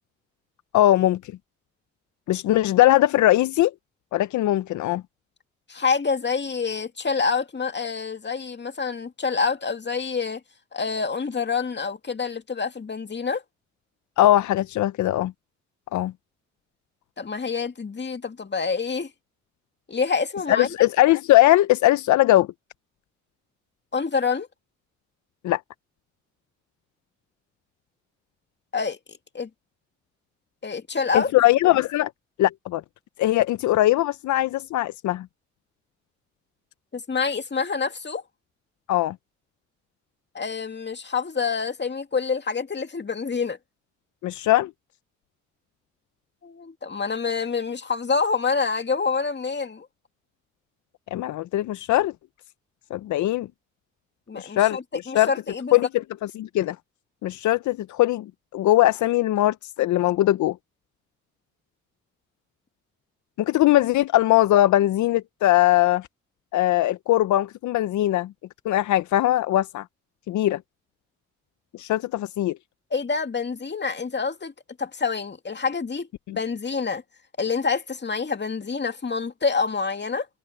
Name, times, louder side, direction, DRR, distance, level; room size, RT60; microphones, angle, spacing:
voice 1, 0.7-1.2 2.3-3.7 4.1-5.0 14.2-15.3 15.9-16.1 20.5-22.5 25.4-25.6 31.1-32.1 32.4-32.8 33.2-35.3 38.9-39.2 44.2-44.7 51.1-52.1 52.9-53.5 54.4-54.8 55.1-55.3 55.7-55.9 56.4-56.8 57.2-60.6 63.4-66.1 66.5-68.3 68.6-69.8 70.3-70.6 71.7-72.6 76.3-76.4, left 15 dB, 80° left, 0.6 m, -20 dB
voice 2, 5.7-10.4 10.7-13.4 17.2-19.1 19.9-20.9 23.9-24.5 28.7-29.5 30.6-31.3 36.9-38.2 40.3-43.6 46.4-49.9 54.3-55.8 72.9-74.5 74.8-77.0 77.4-80.3, left 5 dB, 35° left, 2.3 m, -27 dB
supercardioid pair, 60°, 29 cm